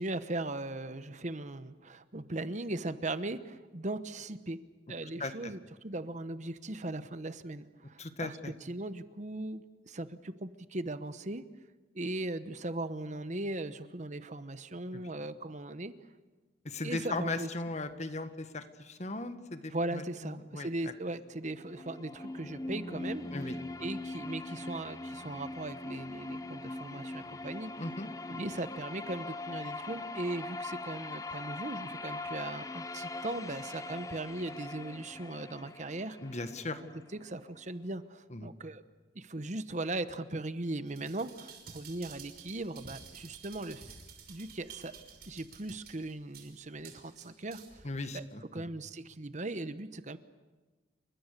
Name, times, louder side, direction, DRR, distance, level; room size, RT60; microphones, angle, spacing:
voice 1, 0.0-4.6 4.9-11.5 11.9-16.0 16.8-17.5 19.7-23.5 23.8-27.9 28.3-36.4 37.1-38.8 39.1-43.9 44.3-47.9 48.1-50.2, right 2 dB, 40° right, 12 dB, 1.0 m, -39 dB
voice 2, 5.2-5.5 8.0-8.5 14.9-15.0 16.7-20.9 23.3-23.6 27.8-28.1 36.2-36.8 38.3-38.5 47.8-48.6, left 2 dB, 40° left, 9 dB, 1.7 m, -38 dB
sound 1, 21.5-37.4, left 2 dB, 20° left, 0.9 m, -41 dB
sound 2, 40.9-47.9 48.3-48.4, right 6 dB, 55° right, 5.8 m, -52 dB
29.5 x 24.0 x 6.8 m, 1.3 s
head